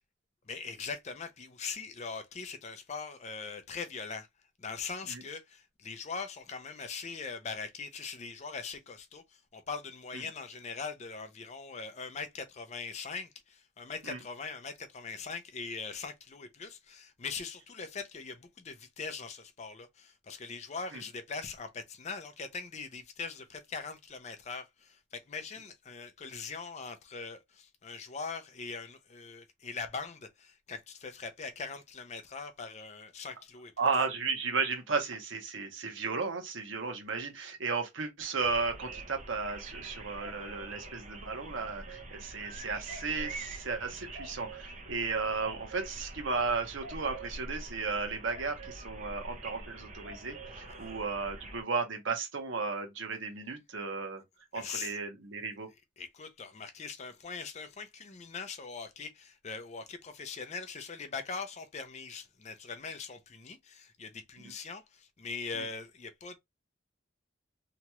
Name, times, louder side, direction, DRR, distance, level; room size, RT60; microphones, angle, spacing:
voice 1, 0.5-4.3 4.6-33.7 50.7-50.9 54.5-55.0 56.0-66.4, left 5 dB, 35° left, 0.4 m, -41 dB
voice 2, 33.8-54.2 54.5-55.7 64.4-64.5 65.5-65.6, right 4 dB, 80° right, 0.8 m, -34 dB
sound 1, 38.4-51.6, right 2 dB, 35° right, 0.6 m, -45 dB
2.9 x 2.3 x 2.9 m
head